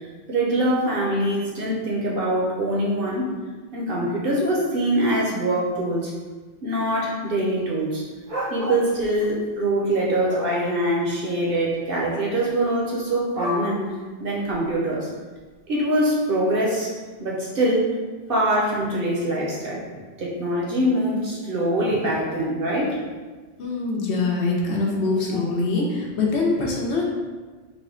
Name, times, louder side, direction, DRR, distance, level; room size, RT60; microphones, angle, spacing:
voice 1, 0.3-3.2 3.7-6.1 6.6-8.0 8.5-13.8 14.2-15.1 15.7-17.9 18.3-19.8 20.2-23.0, right 1 dB, 55° right, -4 dB, 0.8 m, -23 dB
sound 1, 8.3-9.2 9.9-10.5 13.3-13.6 14.5-14.6, equal, 80° right, 1.3 m, -30 dB
voice 2, 23.6-27.0, left 3 dB, 70° left, -2 dB, 0.9 m, -23 dB
3.4 x 2.1 x 3.6 m, 1.4 s
omnidirectional pair, 1.2 m